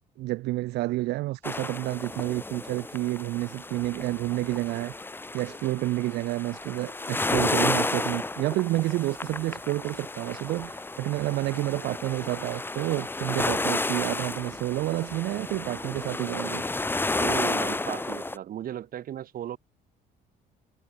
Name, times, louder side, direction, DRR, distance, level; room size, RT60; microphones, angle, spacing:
voice 1, 0.2-4.9 5.3-16.6, right 18 dB, 80° right, 1.1 m, -29 dB
sound 1, 1.4-18.4, left 2 dB, 10° left, 1.5 m, -32 dB
voice 2, 17.2-19.6, right 11 dB, 60° right, 3.7 m, -35 dB
cardioid pair, 110°, 17 cm